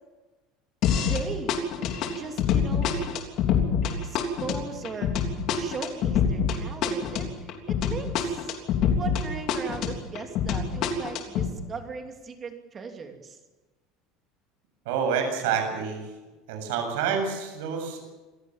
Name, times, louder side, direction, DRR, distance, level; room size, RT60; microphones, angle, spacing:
sound 1, 0.8-1.2 1.5-9.2 9.5-11.5, left 7 dB, 50° left, 3.4 m, -25 dB
voice 1, 0.9-1.6 2.0-2.9 4.0-5.1 5.5-8.5 8.9-13.4, right 4 dB, 25° right, 4 dB, 2.9 m, -38 dB
voice 2, 14.9-16.0 16.5-18.1, right 6 dB, 90° right, 5 dB, 7.3 m, -28 dB
27.0 x 16.5 x 7.4 m, 1.2 s
cardioid pair, 150°, 0 cm